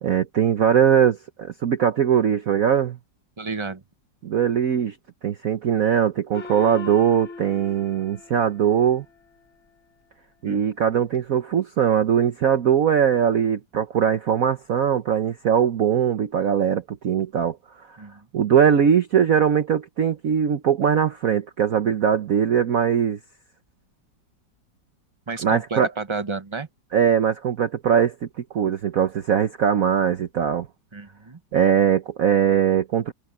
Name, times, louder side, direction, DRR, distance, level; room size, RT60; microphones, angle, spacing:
voice 1, 0.0-3.0 4.2-5.0 5.2-9.0 10.4-17.6 17.9-18.0 18.3-23.2 25.4-25.9 26.9-28.1 28.5-30.7 31.5-33.1, right 8 dB, 55° right, 1.2 m, -21 dB
voice 2, 3.4-3.8 10.4-10.6 18.0-18.2 25.3-26.7 30.9-31.4, right 4 dB, 30° right, 0.5 m, -31 dB
Gong, 6.3-9.3, left 4 dB, 35° left, 5.3 m, -39 dB
omnidirectional pair, 2.1 m